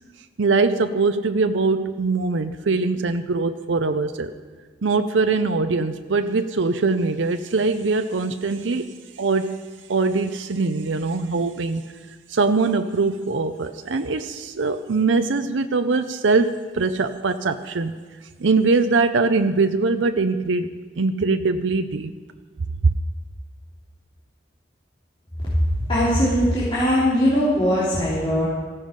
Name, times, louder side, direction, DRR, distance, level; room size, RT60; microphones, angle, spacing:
voice 1, 0.4-4.3 4.8-8.9 9.2-9.6 9.9-11.8 12.3-18.0 18.4-20.7 21.0-22.1, right 3 dB, 90° right, 8 dB, 0.6 m, -22 dB
voice 2, 25.8-28.4, equal, 30° left, -10 dB, 3.5 m, -20 dB
15.0 x 14.5 x 5.2 m, 1.5 s
head